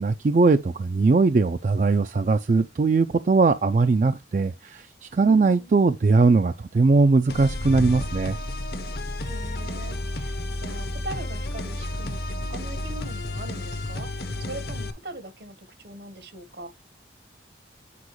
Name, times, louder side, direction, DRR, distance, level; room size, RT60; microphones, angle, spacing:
voice 1, 0.0-8.4, right 3 dB, 45° right, 0.4 m, -20 dB
voice 2, 5.3-5.9 9.2-16.7, right 1 dB, 65° right, 1.1 m, -41 dB
sound 1, 7.2-9.0, left 1 dB, 85° right, 2.9 m, -36 dB
sound 2, 7.3-14.9, left 1 dB, 60° left, 0.9 m, -32 dB
8.4 x 4.8 x 3.0 m
head